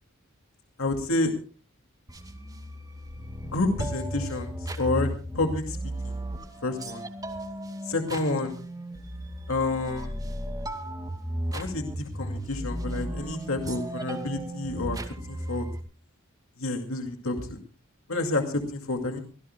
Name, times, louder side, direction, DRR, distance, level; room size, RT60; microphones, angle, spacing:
voice 1, 0.8-1.3 3.4-5.8 6.0-6.1 6.6-7.0 7.8-8.5 9.5-10.2 11.5-15.0 15.2-15.7 16.6-17.6 18.1-19.2, left 2 dB, 80° left, 5 dB, 2.3 m, -29 dB
sound 1, 2.1-15.8, right 1 dB, 20° right, 2.3 m, -35 dB
25.5 x 16.5 x 2.3 m, 0.37 s
head